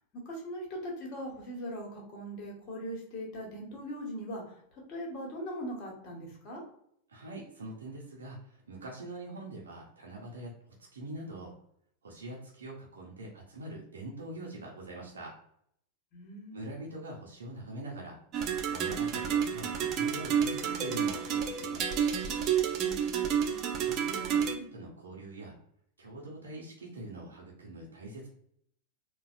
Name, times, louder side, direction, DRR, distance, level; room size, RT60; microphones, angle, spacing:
voice 1, 0.2-6.6 16.1-16.8 22.7-23.9, equal, 40° left, -1 dB, 1.4 m, -41 dB
voice 2, 7.1-11.6 12.0-15.3 16.5-18.2 18.7-22.1 23.8-25.5 26.0-28.3, right 2 dB, 70° right, -3 dB, 0.8 m, -43 dB
sound 1, 18.3-24.6, right 8 dB, 35° right, 0.4 m, -30 dB
4.0 x 2.4 x 2.5 m, 0.69 s
figure-of-eight pair, 90°, 0 cm